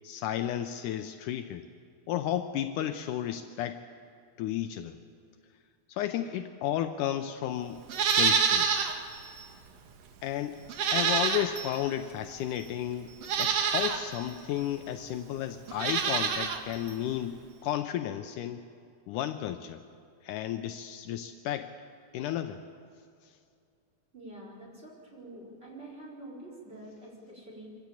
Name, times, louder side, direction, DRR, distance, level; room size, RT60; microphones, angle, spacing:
voice 1, 0.0-1.7 2.1-3.9 4.4-5.0 5.9-7.8 8.2-8.7 10.2-10.6 10.9-18.7 19.1-19.8 20.2-21.8 22.1-22.6 23.2-23.4, left 11 dB, 75° left, 8 dB, 2.1 m, -33 dB
Livestock farm animals working animals, 7.9-9.0 9.4-9.5 10.7-11.7 12.6-12.7 13.2-14.0 15.7-16.6 16.9-17.0, right 6 dB, 60° right, 2.0 m, -26 dB
voice 2, 24.1-27.8, right 1 dB, 15° right, -3 dB, 4.5 m, -46 dB
25.5 x 15.0 x 8.6 m, 2.3 s
omnidirectional pair, 3.8 m